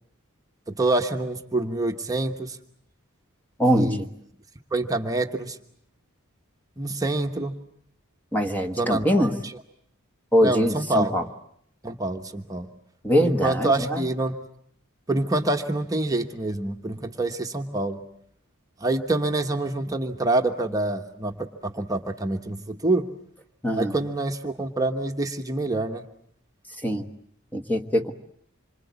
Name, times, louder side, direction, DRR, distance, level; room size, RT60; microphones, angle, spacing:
voice 1, 0.7-2.6 3.7-4.0 4.7-5.6 6.8-7.5 8.8-9.3 10.4-11.1 11.8-12.7 13.2-14.3 15.1-18.0 18.8-23.0 23.7-26.0, right 2 dB, 15° right, 4 dB, 1.2 m, -26 dB
voice 2, 3.6-4.1 8.3-9.4 10.3-11.2 13.0-14.0 23.6-23.9 26.8-27.1 27.5-28.1, equal, 10° left, 6 dB, 1.3 m, -22 dB
26.5 x 24.5 x 8.3 m, 0.69 s
head